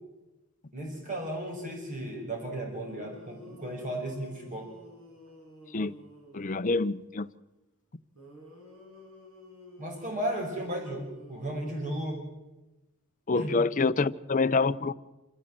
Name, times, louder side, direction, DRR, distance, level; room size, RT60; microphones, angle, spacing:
voice 1, 0.7-4.7 9.8-12.2 13.3-13.5, right 1 dB, 35° right, 1 dB, 5.3 m, -35 dB
sound 1, 2.7-6.9 8.1-12.2, equal, 85° right, 7.0 m, -52 dB
voice 2, 6.3-7.3 13.3-14.9, left 3 dB, 35° left, 11 dB, 0.6 m, -26 dB
27.0 x 14.5 x 7.6 m, 1.1 s
head